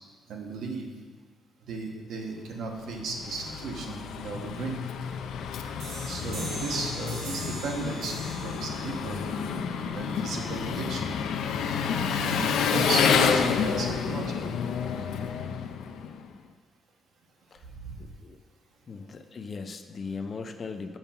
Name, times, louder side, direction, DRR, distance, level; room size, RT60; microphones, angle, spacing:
voice 1, 0.3-0.9 1.7-4.8 6.1-9.2 9.9-11.1 12.2-14.6 17.8-18.0, right 3 dB, 65° right, 1 dB, 1.2 m, -35 dB
Engine, 2.7-16.3, left 6 dB, 90° left, 0.5 m, -29 dB
sound 1, 5.8-11.2, right 2 dB, 85° right, 1.9 m, -43 dB
voice 2, 6.2-6.8 17.5-17.7 18.0-18.4 18.9-21.0, left 4 dB, 30° left, 7 dB, 0.5 m, -39 dB
7.1 x 5.5 x 5.7 m, 1.5 s
cardioid pair, 170°, 0 cm